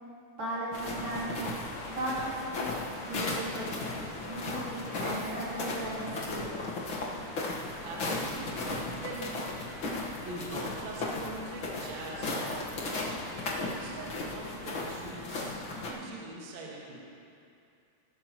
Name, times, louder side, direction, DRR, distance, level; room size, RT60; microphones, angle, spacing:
voice 1, 0.4-1.5 1.9-2.7 3.0-3.7 4.2-6.5, right 1 dB, 35° right, -10 dB, 4.4 m, -36 dB
sound 1, 0.7-15.9, left 2 dB, 65° left, 1.2 m, -36 dB
voice 2, 7.8-9.4 10.2-13.3 13.6-17.0, right 2 dB, 55° right, -4 dB, 2.6 m, -43 dB
20.5 x 12.0 x 3.0 m, 2.6 s
omnidirectional pair, 4.4 m